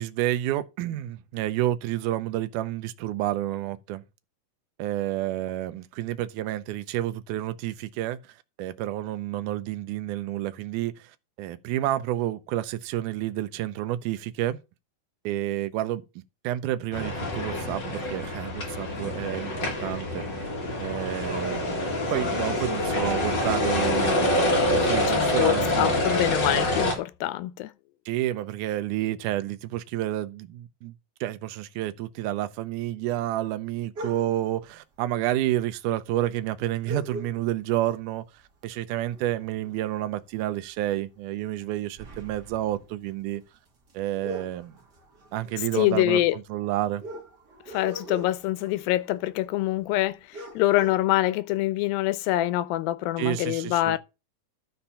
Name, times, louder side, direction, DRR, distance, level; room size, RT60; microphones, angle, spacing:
voice 1, 0.0-4.0 4.8-8.2 8.6-11.1 11.4-14.6 15.2-16.0 16.4-20.5 20.8-25.9 28.1-30.9 31.2-38.2 38.6-43.4 43.9-44.7 45.3-47.0 53.2-54.0, right 14 dB, 75° right, 2.0 m, -30 dB
sound 1, 16.9-27.0, left 1 dB, 40° left, 2.1 m, -26 dB
voice 2, 25.1-27.7 45.8-46.4 47.7-54.0, left 16 dB, 85° left, 2.4 m, -25 dB
sound 2, 33.9-34.5 35.5-35.6 35.9-36.0 36.8-37.8 38.2-38.4 38.8-40.4 40.7-40.9 41.4-49.7 50.0-50.1 50.3-50.9, equal, 35° right, 1.9 m, -42 dB
11.5 x 4.3 x 5.5 m
omnidirectional pair, 4.1 m